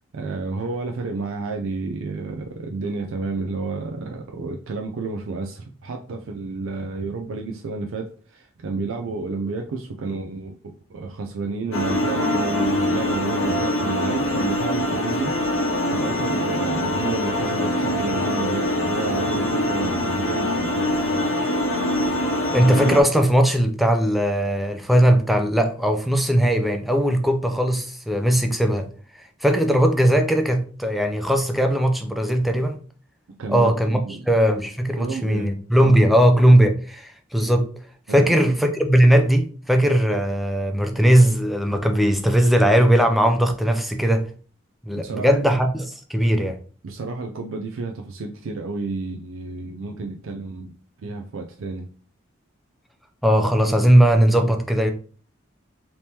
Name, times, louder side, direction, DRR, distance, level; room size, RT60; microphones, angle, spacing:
voice 1, 0.1-15.6 15.9-21.3 33.4-33.7 34.1-34.2 35.0-35.5 35.8-36.0 38.1-38.5 45.0-45.3 46.8-50.7 51.0-51.9, right 3 dB, 80° right, 0.4 m, -31 dB
sound 1, 11.7-23.0, left 1 dB, 80° left, 0.7 m, -24 dB
voice 2, 22.5-28.8 29.2-32.8 33.5-34.0 34.3-37.7 38.1-44.2 44.8-46.6 53.2-54.9, equal, ahead, 0.4 m, -19 dB
3.4 x 3.0 x 2.8 m
head